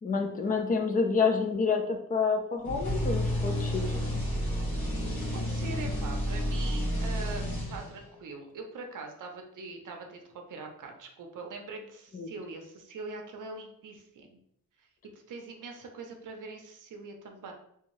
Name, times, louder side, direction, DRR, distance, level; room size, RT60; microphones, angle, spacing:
voice 1, 0.0-3.8 12.1-12.3, left 5 dB, 25° left, 5 dB, 0.4 m, -28 dB
sound 1, 2.6-8.1, equal, 85° left, 1.4 m, -30 dB
voice 2, 5.4-14.4 15.3-17.5, right 3 dB, 60° right, 3 dB, 0.7 m, -42 dB
3.4 x 2.7 x 3.0 m, 0.73 s
wide cardioid pair, 170°, 35 cm